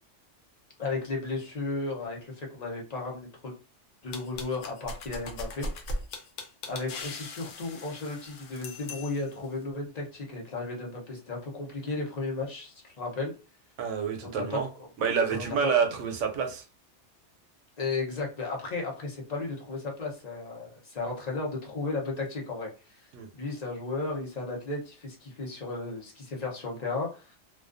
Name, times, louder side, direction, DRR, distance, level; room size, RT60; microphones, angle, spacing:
voice 1, 0.8-3.5 4.0-5.8 6.7-13.3 14.2-14.9 15.3-15.9 17.8-23.0 23.3-27.4, left 3 dB, 40° left, 0.8 m, -34 dB
sound 1, 4.1-9.4, left 2 dB, 90° left, 1.0 m, -39 dB
voice 2, 13.8-14.7 15.0-16.6 23.1-23.3, right 6 dB, 80° right, 0.9 m, -28 dB
2.4 x 2.3 x 2.4 m
omnidirectional pair, 1.2 m